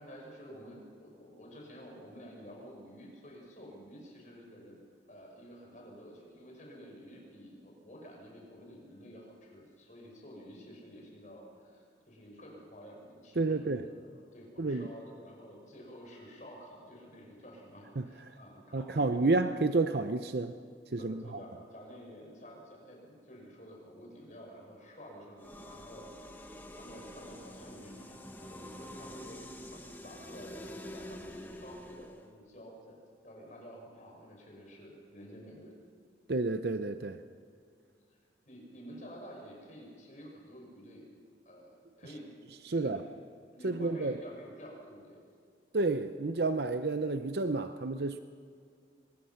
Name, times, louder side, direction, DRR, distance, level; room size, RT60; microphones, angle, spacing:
voice 1, 0.0-4.8 5.1-19.4 21.0-33.0 33.2-35.7 37.9-38.2 38.4-41.1 41.4-42.3 42.7-43.0 43.5-45.2, equal, 45° left, -1 dB, 6.2 m, -50 dB
voice 2, 13.4-13.8 14.6-14.9 18.0-18.1 18.7-20.5 20.9-21.2 36.3-37.2 42.6-43.0 43.6-44.2 45.7-48.2, right 3 dB, 65° right, 9 dB, 0.7 m, -30 dB
sound 1, 25.4-32.3, left 1 dB, 10° left, 1.2 m, -47 dB
24.0 x 21.0 x 5.8 m, 2.2 s
head